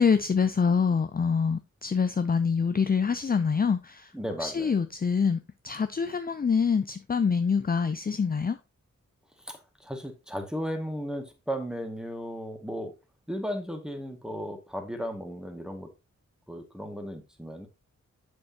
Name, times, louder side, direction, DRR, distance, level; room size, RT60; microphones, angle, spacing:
voice 1, 0.0-4.1 4.4-8.6, left 6 dB, 30° left, 0.5 m, -25 dB
voice 2, 4.1-4.7 9.4-12.9 13.3-15.9 16.5-17.7, equal, ahead, 1.8 m, -35 dB
7.1 x 6.5 x 2.8 m
cardioid pair, 65°, 31 cm